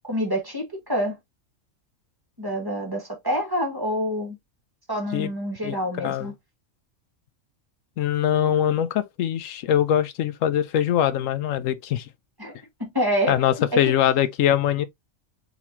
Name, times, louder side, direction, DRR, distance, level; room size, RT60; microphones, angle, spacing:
voice 1, 0.1-1.1 2.4-4.4 4.9-6.3 12.4-13.4 13.7-13.9, equal, 15° right, 1.6 m, -27 dB
voice 2, 5.6-6.3 8.0-12.1 13.3-14.9, left 10 dB, 80° left, 1.0 m, -23 dB
4.3 x 4.1 x 2.7 m
omnidirectional pair, 1.3 m